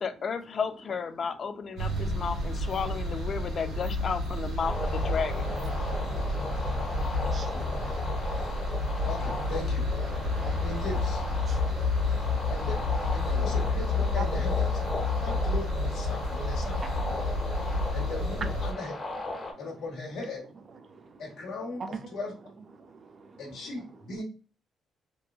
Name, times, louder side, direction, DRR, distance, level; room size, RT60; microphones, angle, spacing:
voice 1, 0.0-5.5, left 6 dB, 50° left, 0.3 m, -33 dB
sound 1, 1.8-18.7, left 2 dB, 90° right, 1.4 m, -30 dB
sound 2, 4.6-19.5, left 2 dB, 30° left, 0.8 m, -37 dB
voice 2, 6.0-7.9 10.1-10.7 11.5-12.5 13.5-13.6 14.1-14.2 15.0-15.2 17.2-18.0 19.4-19.6 20.9-21.2 21.8-22.0 22.8-23.4, right 5 dB, 45° right, 0.5 m, -45 dB
voice 3, 9.0-9.9 10.6-11.2 12.5-12.7 13.1-14.7 15.2-16.8 17.9-18.9 19.6-20.4 21.2-22.3 23.4-24.2, left 2 dB, 80° left, 0.9 m, -38 dB
3.0 x 2.2 x 2.3 m
cardioid pair, 90°, 0 cm